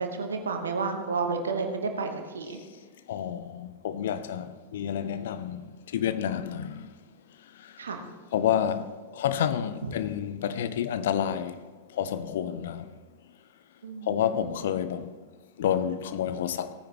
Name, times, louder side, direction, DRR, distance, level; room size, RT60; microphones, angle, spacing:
voice 1, 0.0-2.6 7.8-8.0 13.8-14.7, right 4 dB, 70° right, 1.3 m, -31 dB
voice 2, 3.1-6.9 8.3-11.6 11.9-12.9 14.1-15.1 15.6-16.7, left 9 dB, 60° left, 0.6 m, -29 dB
17.5 x 9.8 x 3.1 m
figure-of-eight pair, 90°, 0 cm